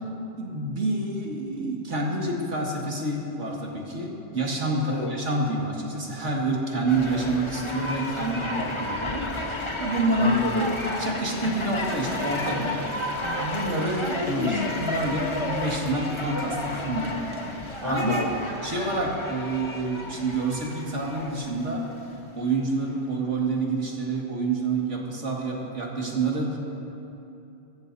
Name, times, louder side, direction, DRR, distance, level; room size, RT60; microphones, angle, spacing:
voice 1, 0.4-9.3 9.8-10.3 11.0-12.9 13.3-17.3 17.8-18.2 18.6-21.9 22.4-26.6, right 2 dB, 70° right, -2 dB, 2.3 m, -28 dB
sound 1, 6.9-21.9 22.6-22.7, left 2 dB, 25° left, 1.0 m, -32 dB
voice 2, 10.2-10.7 14.3-14.7 17.8-18.3, left 3 dB, 75° left, 2 dB, 1.7 m, -28 dB
24.0 x 13.5 x 2.7 m, 2.8 s
omnidirectional pair, 1.3 m